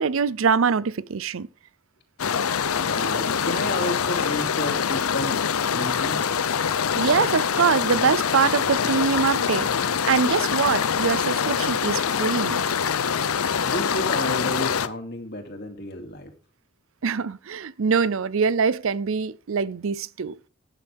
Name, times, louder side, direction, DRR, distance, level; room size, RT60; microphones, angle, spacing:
voice 1, 0.0-1.5 7.0-9.7 10.1-12.6 17.0-20.4, right 5 dB, 70° right, 0.5 m, -23 dB
sound 1, 2.2-14.9, left 7 dB, 90° left, 0.7 m, -24 dB
voice 2, 2.8-5.4 5.7-6.2 13.6-16.3, left 1 dB, 50° left, 2.6 m, -31 dB
12.5 x 9.9 x 3.5 m
head